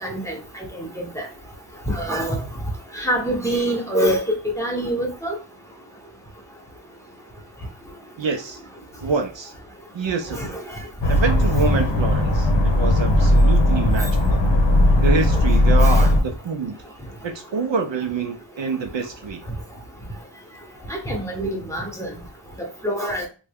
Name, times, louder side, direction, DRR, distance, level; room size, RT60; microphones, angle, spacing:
voice 1, 0.0-0.3 1.0-1.2 1.9-2.4 2.9-5.3 10.3-10.5 15.8-16.1 20.9-22.1 22.6-23.3, right 1 dB, 5° left, -1 dB, 1.0 m, -25 dB
voice 2, 8.2-8.6 9.0-9.5 9.9-10.6 11.1-14.4 15.0-16.8 17.2-19.4, right 4 dB, 65° right, 5 dB, 0.6 m, -26 dB
sound 1, 11.0-16.2, left 1 dB, 65° left, 0.8 m, -17 dB
3.3 x 2.2 x 3.4 m, 0.35 s
wide cardioid pair, 75°, 48 cm